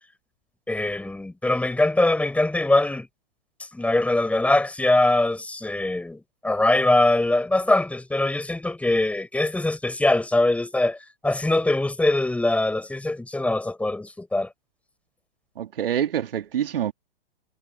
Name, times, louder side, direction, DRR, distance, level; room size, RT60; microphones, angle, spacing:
voice 1, 0.7-3.1 3.7-11.0 11.2-14.5, left 2 dB, 5° left, 4.5 m, -22 dB
voice 2, 15.6-16.9, right 10 dB, 65° right, 3.0 m, -26 dB
figure-of-eight pair, 115°, 31 cm